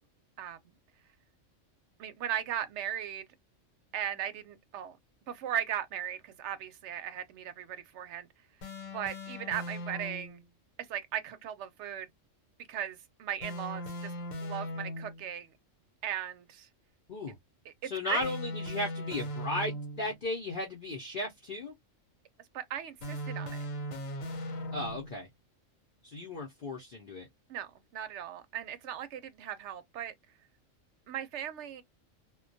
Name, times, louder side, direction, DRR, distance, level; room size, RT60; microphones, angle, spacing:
voice 1, 0.4-0.7 2.0-3.2 3.9-5.0 5.3-8.3 8.9-10.4 10.9-12.1 12.7-14.1 14.4-15.5 16.0-16.7 18.0-18.3 22.5-23.6 27.5-30.1 31.1-31.8, right 10 dB, 70° right, 0.8 m, -37 dB
sound 1, 8.6-10.4 13.4-15.3 18.2-20.1 23.0-25.2, equal, 85° left, 1.1 m, -39 dB
voice 2, 17.8-21.7 24.7-25.3 26.0-27.3, left 2 dB, 50° left, 0.7 m, -35 dB
2.2 x 2.2 x 2.5 m
omnidirectional pair, 1.3 m